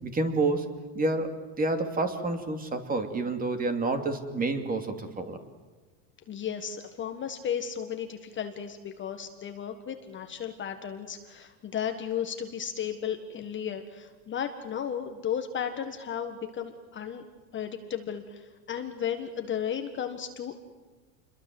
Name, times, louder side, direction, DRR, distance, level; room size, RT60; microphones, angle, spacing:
voice 1, 0.0-0.6 0.9-1.3 1.5-5.4, right 3 dB, 15° right, 7 dB, 2.8 m, -28 dB
voice 2, 6.3-17.2 17.5-20.5, left 8 dB, 25° left, 6 dB, 1.6 m, -34 dB
28.5 x 22.5 x 7.9 m, 1.3 s
supercardioid pair, 145°, 49 cm